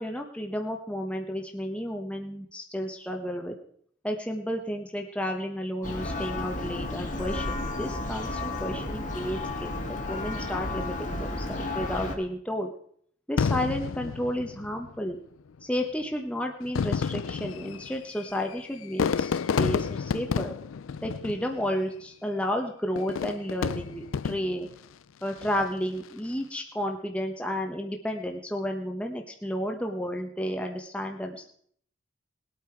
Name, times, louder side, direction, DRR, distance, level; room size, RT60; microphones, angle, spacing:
voice 1, 0.0-3.6 4.0-12.7 13.3-15.2 15.6-20.5 21.0-24.7 25.2-31.4, equal, 5° left, 2 dB, 1.1 m, -32 dB
Church bell, 5.8-12.1, left 2 dB, 40° left, 1.9 m, -32 dB
Fireworks, 13.4-15.0 15.8-15.9 16.6-21.9 23.0-24.7 25.3-25.8, left 6 dB, 80° left, 0.4 m, -30 dB
20.0 x 8.5 x 4.6 m, 0.62 s
head